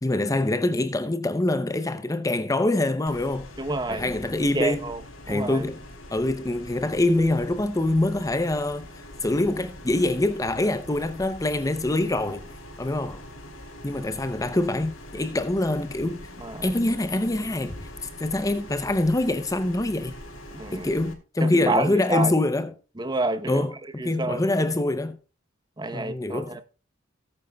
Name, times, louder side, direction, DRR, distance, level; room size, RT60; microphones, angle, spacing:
voice 1, 0.0-3.5 3.9-4.9 5.3-5.8 6.1-12.4 12.8-13.2 13.8-16.3 16.6-20.1 20.7-22.7 23.5-25.2 25.9-26.6, left 2 dB, 15° left, 0.6 m, -25 dB
sound 1, 3.1-21.1, left 1 dB, 85° left, 2.9 m, -43 dB
voice 2, 3.6-4.1 4.5-5.0 5.3-5.6 16.4-16.6 20.5-20.9 21.4-22.3 23.0-23.7 24.0-24.4 25.8-26.6, right 2 dB, 20° right, 0.9 m, -28 dB
17.5 x 8.8 x 2.3 m
head